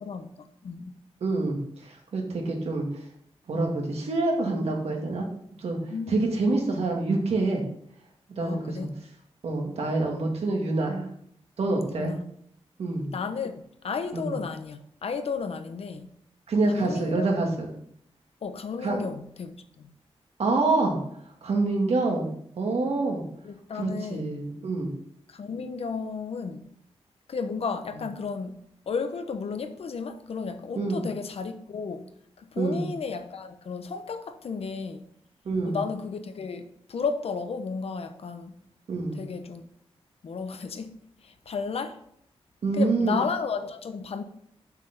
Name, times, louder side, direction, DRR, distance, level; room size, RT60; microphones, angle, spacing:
voice 1, 0.0-0.9 5.9-6.3 8.4-9.0 11.9-12.2 13.1-16.1 16.7-17.3 18.4-19.9 23.4-24.3 25.3-26.7 27.3-28.6 28.9-32.1 32.4-35.1 35.6-38.5 39.2-39.6 40.2-40.9 41.2-42.0 42.7-44.2, left 5 dB, 70° left, 1.0 m, -33 dB
voice 2, 1.2-2.9 3.5-5.3 5.6-5.8 6.1-7.6 8.3-8.9 9.4-11.1 11.6-12.1 12.8-13.1 14.1-14.3 16.5-17.7 18.8-19.0 20.4-21.0 21.4-23.2 23.8-24.9 30.8-31.0 32.6-32.9 35.5-35.8 38.9-39.2 42.6-43.2, right 3 dB, 80° right, 2.3 m, -26 dB
7.3 x 6.0 x 6.7 m
wide cardioid pair, 150°, 10 cm